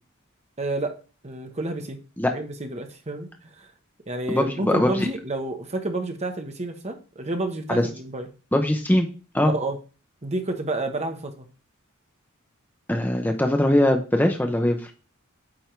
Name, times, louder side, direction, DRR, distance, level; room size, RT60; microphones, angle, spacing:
voice 1, 0.6-0.9 1.2-2.0 2.3-3.7 4.1-8.3 9.5-9.8 10.2-11.5, right 2 dB, 30° right, 5 dB, 1.1 m, -30 dB
voice 2, 4.3-5.1 7.7-7.9 8.5-9.1 9.3-9.5 12.9-14.9, left 1 dB, 10° left, 4 dB, 0.7 m, -21 dB
8.8 x 3.6 x 4.6 m, 0.35 s
head